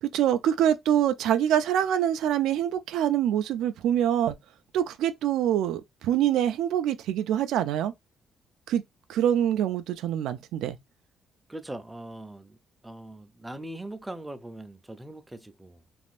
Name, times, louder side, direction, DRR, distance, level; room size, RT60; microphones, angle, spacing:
voice 1, 0.0-4.3 4.7-7.9 8.7-8.8 9.1-10.8, right 10 dB, 85° right, 0.4 m, -25 dB
voice 2, 11.5-12.6 12.8-15.8, right 1 dB, 10° right, 0.5 m, -41 dB
3.4 x 2.5 x 2.4 m
cardioid pair, 90°, 0 cm